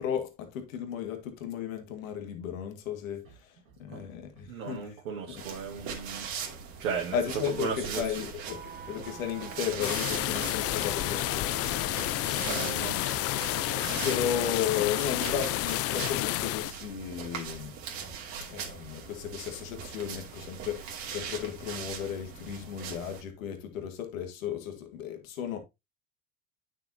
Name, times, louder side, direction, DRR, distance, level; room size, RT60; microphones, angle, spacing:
voice 1, 0.0-5.0 5.3-5.5 7.1-11.5 11.9-13.2 13.9-17.8 18.5-25.6, left 9 dB, 75° left, 2.0 m, -35 dB
voice 2, 4.5-6.3 6.8-7.2 7.6-8.0 12.5-13.0, right 6 dB, 85° right, 2.1 m, -35 dB
sound 1, 5.4-23.2, right 7 dB, 65° right, 2.7 m, -41 dB
sound 2, 8.5-15.2 15.4-15.6, right 5 dB, 25° right, 1.8 m, -44 dB
sound 3, 9.8-16.7, left 16 dB, 40° left, 0.4 m, -30 dB
9.6 x 6.1 x 2.8 m
hypercardioid pair, 85°, 40 cm